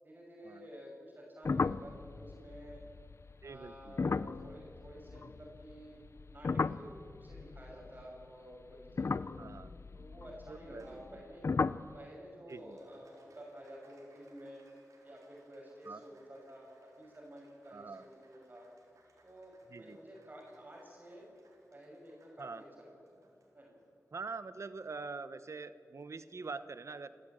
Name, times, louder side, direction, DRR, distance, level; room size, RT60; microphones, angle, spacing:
voice 1, 0.0-2.8 3.4-6.0 6.3-9.4 9.9-11.4 11.9-14.7 15.0-18.7 19.2-21.3 21.7-22.9 23.2-23.3 23.5-23.7, equal, 35° right, -2 dB, 6.6 m, -51 dB
sound 1, 1.4-5.8 6.1-8.2 8.8-11.2 11.4-12.0, left 4 dB, 55° left, 0.5 m, -36 dB
voice 2, 3.4-4.0 9.4-9.7 10.5-11.2 12.5-12.8 15.9-16.0 17.7-18.1 19.7-20.0 22.4-22.6 24.1-27.1, right 4 dB, 60° right, 13 dB, 1.0 m, -44 dB
Applause, 10.8-25.4, right 2 dB, 90° right, 4.1 m, -68 dB
28.0 x 14.0 x 9.0 m, 2.5 s
cardioid pair, 60°, 5 cm